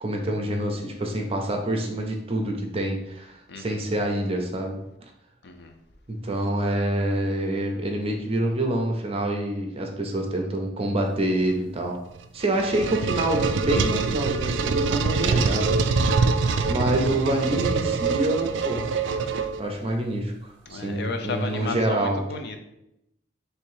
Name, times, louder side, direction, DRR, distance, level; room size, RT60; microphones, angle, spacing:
voice 1, 0.0-4.8 6.1-12.0 12.3-16.3 16.7-18.9 19.6-22.2, right 1 dB, 35° right, 2 dB, 0.6 m, -27 dB
voice 2, 3.5-3.8 5.4-5.8 20.7-22.6, left 3 dB, 60° left, 5 dB, 0.6 m, -33 dB
sound 1, 12.2-19.9, right 4 dB, 70° right, 0.3 m, -24 dB
3.2 x 3.0 x 4.6 m, 0.84 s
head